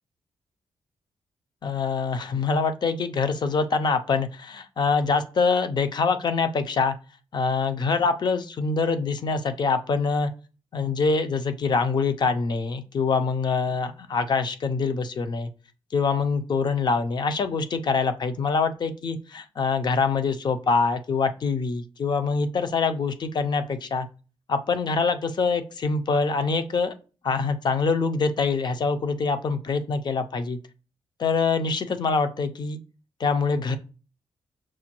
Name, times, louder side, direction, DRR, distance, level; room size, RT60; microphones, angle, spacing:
voice 1, 1.6-6.9 7.3-10.3 10.7-15.5 15.9-24.1 24.5-26.9 27.2-30.6 31.2-32.8 33.2-33.8, left 4 dB, 45° left, 9 dB, 0.5 m, -24 dB
6.0 x 2.2 x 2.9 m, 0.35 s
wide cardioid pair, 130°, 10 cm